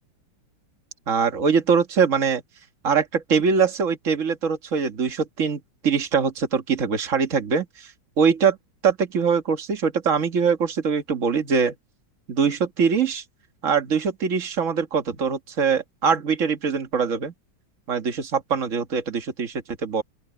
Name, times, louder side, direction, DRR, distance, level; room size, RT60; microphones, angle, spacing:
voice 1, 1.1-2.4 2.8-7.9 8.2-8.6 8.8-11.7 12.3-13.2 13.6-17.3 17.9-20.0, right 6 dB, 40° right, 1.9 m, -23 dB
open air
omnidirectional pair, 2.2 m